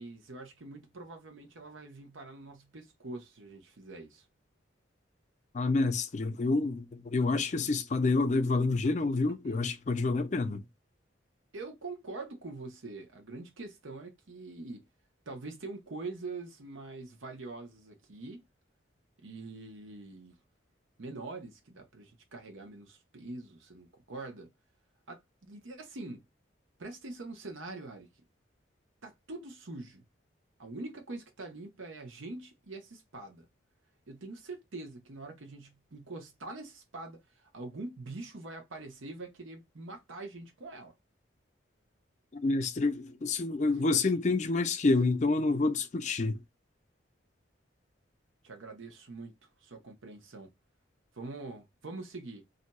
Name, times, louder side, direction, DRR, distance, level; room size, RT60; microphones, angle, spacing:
voice 1, 0.0-4.2 9.3-9.6 11.5-14.8 15.3-18.4 19.2-20.3 21.0-24.5 25.1-26.2 26.8-28.1 29.0-30.0 30.6-33.5 34.1-40.9 48.4-49.4 49.6-50.5 51.1-52.4, right 3 dB, 90° right, 0.9 m, -44 dB
voice 2, 5.5-10.6 42.3-46.4, left 3 dB, 35° left, 0.4 m, -28 dB
2.6 x 2.2 x 4.0 m
head